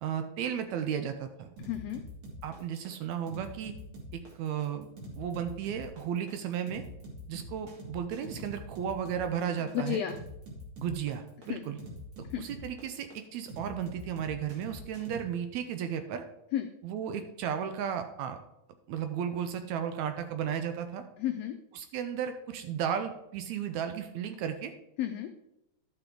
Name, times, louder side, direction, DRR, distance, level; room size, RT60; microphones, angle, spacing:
voice 1, 0.0-1.5 2.4-3.8 4.1-4.9 5.2-6.8 7.3-10.0 10.8-11.8 12.4-16.2 16.8-18.4 18.9-21.0 21.8-24.7, right 8 dB, 80° right, 8 dB, 1.8 m, -34 dB
voice 2, 1.6-2.0 9.5-10.2 11.5-11.6 12.2-12.4 16.5-16.7 21.2-21.5 25.0-25.3, left 11 dB, 90° left, 6 dB, 1.4 m, -32 dB
sound 1, 1.6-15.2, equal, 45° right, 2.4 m, -45 dB
11.5 x 5.8 x 3.8 m, 0.86 s
omnidirectional pair, 3.6 m